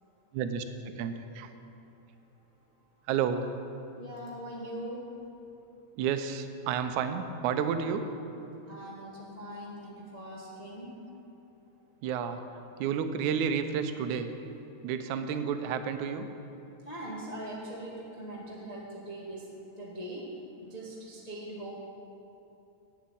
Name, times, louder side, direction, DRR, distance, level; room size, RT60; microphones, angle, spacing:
voice 1, 0.3-1.5 3.1-3.5 6.0-8.1 12.0-12.4 12.8-14.3 14.8-16.3, right 7 dB, 85° right, 9 dB, 2.1 m, -31 dB
voice 2, 4.0-5.0 8.7-10.9 16.8-19.5 19.8-20.2 20.6-21.7, right 1 dB, 85° left, -4 dB, 0.3 m, -41 dB
8.4 x 7.5 x 8.8 m, 2.9 s
omnidirectional pair, 3.3 m